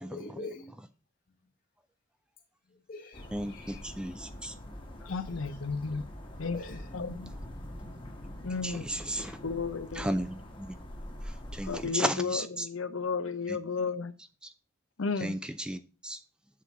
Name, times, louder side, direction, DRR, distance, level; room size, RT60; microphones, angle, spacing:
voice 1, 0.1-0.7 2.9-3.9 6.5-6.9 9.1-9.3, left 2 dB, 45° left, 1.3 m, -44 dB
sound 1, 3.1-11.9, left 1 dB, 25° left, 1.3 m, -44 dB
voice 2, 3.3-4.5 8.6-9.4 10.0-10.8 11.5-12.4 13.5-13.6 15.2-16.2, right 1 dB, 5° right, 0.4 m, -34 dB
voice 3, 5.0-6.1 6.4-6.6 6.9-7.3 8.4-10.2 11.6-14.1 15.0-15.4, left 4 dB, 80° left, 0.7 m, -33 dB
7.4 x 4.2 x 5.9 m
head